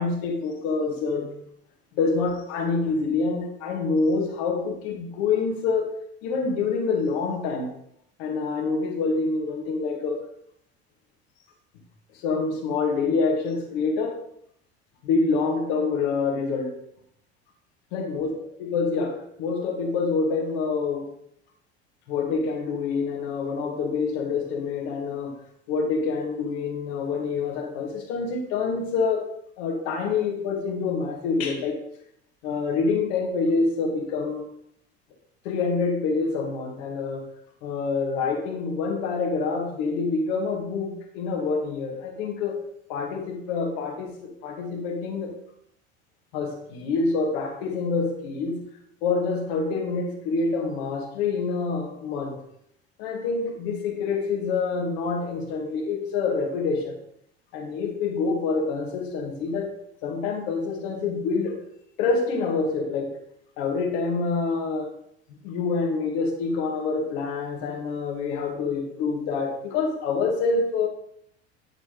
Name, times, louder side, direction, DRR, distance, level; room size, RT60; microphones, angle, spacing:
voice 1, 0.0-1.4 1.9-6.0 6.2-7.7 8.2-10.3 12.2-14.2 15.0-16.7 17.9-18.3 18.6-21.1 22.1-25.3 25.7-29.3 29.6-31.8 32.4-34.5 35.4-37.2 37.6-42.6 42.9-45.3 46.3-48.6 49.0-52.4 53.0-57.0 57.5-59.7 60.0-61.6 62.0-63.2 63.6-64.9 65.3-70.9, left 4 dB, 65° left, 2 dB, 2.1 m, -26 dB
11.0 x 4.4 x 5.2 m, 0.73 s
hypercardioid pair, 70°, 33 cm